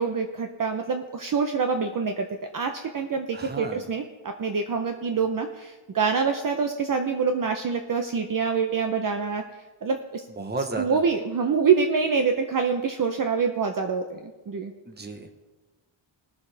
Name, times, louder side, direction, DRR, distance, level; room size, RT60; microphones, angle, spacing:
voice 1, 0.0-2.3 2.5-9.4 9.8-10.5 10.8-14.7, right 5 dB, 45° right, 5 dB, 0.7 m, -26 dB
voice 2, 3.3-3.8 10.3-11.0 14.8-15.3, right 2 dB, 20° right, 7 dB, 0.9 m, -33 dB
20.5 x 7.1 x 3.3 m, 1.2 s
wide cardioid pair, 155°, 49 cm